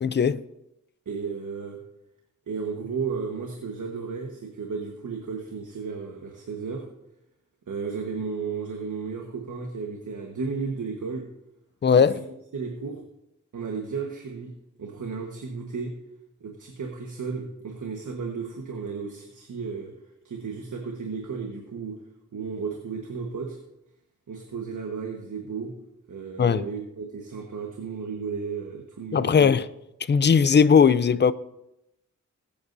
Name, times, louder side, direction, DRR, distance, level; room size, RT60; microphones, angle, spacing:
voice 1, 0.0-0.4 11.8-12.2 26.4-26.7 29.1-29.7 30.1-31.3, left 6 dB, 35° left, 0.5 m, -18 dB
voice 2, 1.0-1.8 2.5-6.8 7.7-11.3 11.9-13.0 13.5-14.5 14.8-15.9 16.4-19.9 20.2-22.0 22.3-23.6 24.3-25.7 26.1-29.6, right 5 dB, 75° right, 1.4 m, -34 dB
20.5 x 8.6 x 2.7 m
wide cardioid pair, 90°, 31 cm